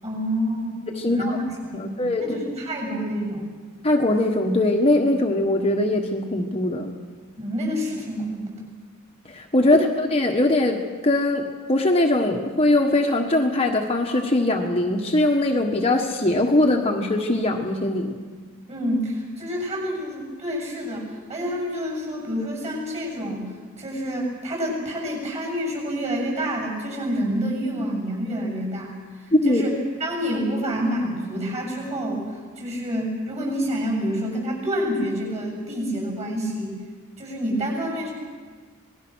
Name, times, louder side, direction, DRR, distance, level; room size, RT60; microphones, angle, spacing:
voice 1, 0.0-0.8 1.0-1.4 1.7-3.5 7.4-8.6 9.7-9.8 18.7-23.5 23.8-29.0 29.4-29.7 30.0-32.2 32.6-36.8 37.2-38.1, equal, 30° right, 1 dB, 7.7 m, -28 dB
voice 2, 0.9-1.4 1.7-2.4 3.8-6.9 9.3-10.8 11.0-18.2 29.3-29.6, left 1 dB, 30° left, 1 dB, 1.4 m, -21 dB
27.0 x 20.5 x 6.3 m, 1.5 s
head